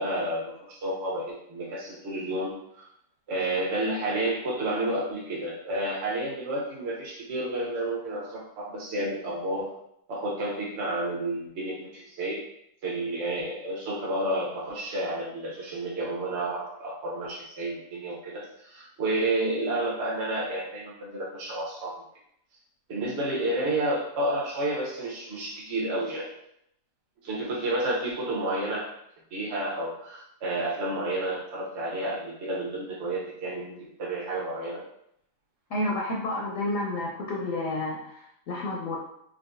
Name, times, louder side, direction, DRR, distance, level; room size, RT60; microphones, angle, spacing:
voice 1, 0.0-2.5 2.8-2.9 3.3-9.7 10.1-12.4 12.8-21.9 22.9-26.3 27.2-28.9 29.3-34.8, right 1 dB, 50° right, -3 dB, 0.8 m, -30 dB
voice 2, 35.7-39.0, left 1 dB, 70° left, -2 dB, 0.7 m, -30 dB
4.6 x 2.2 x 2.5 m, 0.75 s
omnidirectional pair, 2.0 m